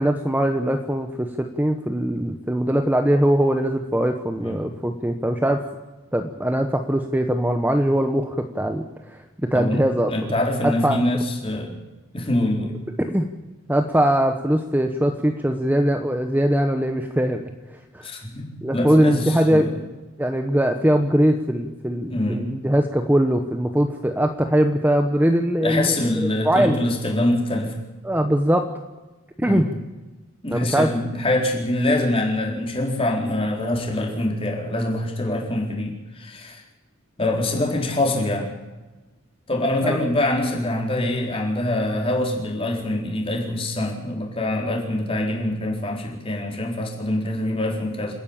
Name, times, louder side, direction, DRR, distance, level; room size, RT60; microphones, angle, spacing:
voice 1, 0.0-5.7 6.1-10.1 10.6-11.0 13.0-13.3 13.7-18.1 18.6-19.7 20.2-26.8 28.0-28.7 29.4-29.7 30.5-30.9 39.8-40.0, right 1 dB, 10° right, 6 dB, 1.0 m, -21 dB
voice 2, 10.1-11.8 12.1-12.7 18.0-19.8 22.1-22.5 25.6-27.7 29.4-29.7 30.4-36.6 37.2-38.5 39.5-48.2, left 1 dB, 25° left, -1 dB, 4.3 m, -24 dB
27.5 x 10.5 x 8.9 m, 1.2 s
head